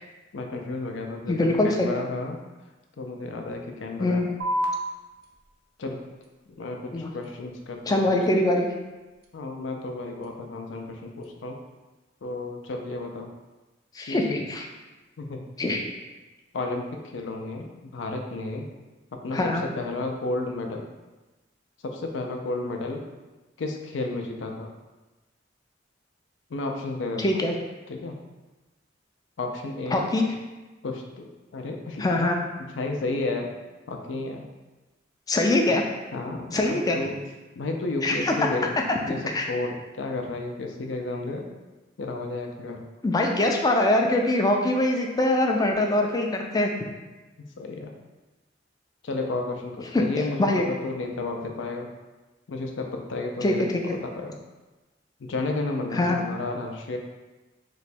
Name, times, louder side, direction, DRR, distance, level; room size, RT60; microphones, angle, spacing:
voice 1, 0.3-2.4 3.0-4.2 5.8-6.0 6.5-8.2 9.3-11.6 12.2-13.3 14.1-14.4 15.2-15.4 16.5-18.7 19.2-19.4 19.8-20.9 21.8-23.0 23.6-24.7 26.5-27.4 27.9-28.2 29.4-30.0 30.8-32.0 32.6-33.5 33.9-34.5 35.7-35.8 36.1-37.2 37.6-38.7 39.0-39.2 39.5-41.5 42.0-42.8 47.4-47.9 49.0-51.9 52.5-54.4 55.2-57.0, left 2 dB, 75° left, 3 dB, 0.5 m, -32 dB
voice 2, 1.3-1.9 4.0-4.3 6.9-7.1 7.9-8.7 14.0-14.6 15.6-15.8 19.3-19.7 27.2-27.5 29.9-30.2 32.0-32.4 35.3-35.8 36.5-37.0 38.0-38.4 38.9-39.0 39.3-39.5 43.0-46.7 49.9-50.0 50.4-50.7 53.4-53.7 55.9-56.2, left 1 dB, 20° left, 2 dB, 0.3 m, -23 dB
sound 1, 4.4-11.4, equal, 55° right, 0.5 m, -37 dB
3.0 x 2.2 x 4.2 m, 1.2 s
head